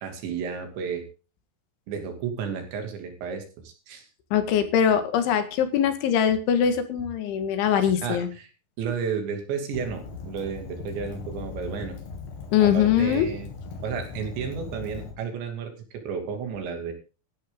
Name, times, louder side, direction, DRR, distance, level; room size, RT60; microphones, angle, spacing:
voice 1, 0.0-1.0 1.9-4.1 8.0-8.5 8.8-12.0 12.6-13.5 13.8-15.7 16.1-16.9, right 6 dB, 75° right, 6 dB, 5.0 m, -32 dB
voice 2, 4.3-8.3 12.5-13.3, left 9 dB, 90° left, 9 dB, 4.3 m, -22 dB
Fire, 9.7-15.1, left 4 dB, 70° left, 4.7 m, -38 dB
15.5 x 12.0 x 3.9 m, 0.34 s
omnidirectional pair, 5.2 m